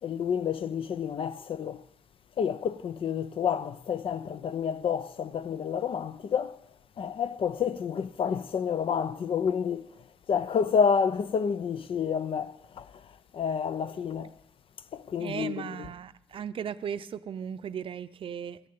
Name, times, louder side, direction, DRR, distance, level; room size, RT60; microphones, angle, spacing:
voice 1, 0.0-1.9 2.4-6.6 7.0-14.3 14.9-15.9, left 7 dB, 70° left, 0.5 m, -29 dB
voice 2, 15.2-18.6, right 8 dB, 65° right, 0.5 m, -36 dB
14.0 x 6.6 x 8.6 m
wide cardioid pair, 160°, 10 cm